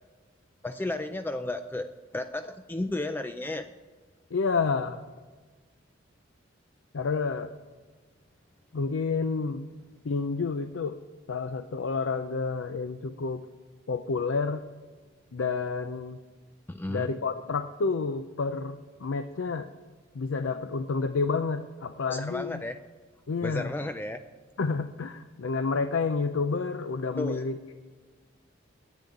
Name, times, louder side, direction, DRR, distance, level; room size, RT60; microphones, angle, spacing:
voice 1, 0.6-1.9 2.1-3.7 16.7-17.1 22.1-22.8 23.4-24.2 27.2-27.4, left 2 dB, 10° left, 9 dB, 0.3 m, -33 dB
voice 2, 4.3-5.0 6.9-7.5 8.7-9.7 10.0-11.0 11.3-13.4 13.9-14.6 15.3-16.2 16.9-19.7 20.1-22.6 23.3-23.7 24.6-27.7, left 4 dB, 80° left, 10 dB, 0.5 m, -29 dB
10.0 x 8.3 x 8.4 m, 1.4 s
head